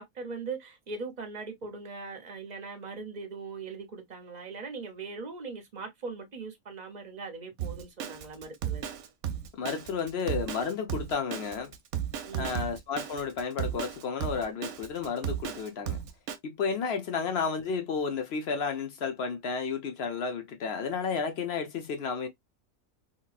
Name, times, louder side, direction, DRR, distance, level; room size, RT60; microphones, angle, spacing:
voice 1, 0.0-8.8 12.2-12.6, right 4 dB, 40° right, 0.8 m, -40 dB
Drum kit, 7.6-16.4, right 9 dB, 70° right, 0.9 m, -34 dB
voice 2, 9.5-11.7 12.4-16.0 16.4-22.3, left 5 dB, 60° left, 0.8 m, -32 dB
3.0 x 2.8 x 2.3 m
omnidirectional pair, 1.3 m